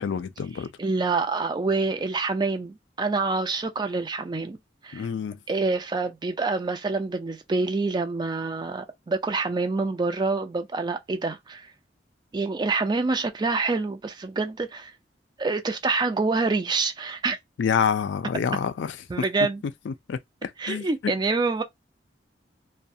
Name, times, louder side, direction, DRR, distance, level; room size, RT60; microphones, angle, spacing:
voice 1, 0.0-0.7 4.9-5.4 17.6-18.9 19.9-20.9, left 7 dB, 80° left, 0.4 m, -27 dB
voice 2, 0.8-4.6 4.8-5.1 5.5-11.7 12.3-14.9 15.4-17.4 19.1-19.6 20.6-21.6, right 3 dB, 25° right, 0.4 m, -26 dB
2.3 x 2.1 x 2.6 m
head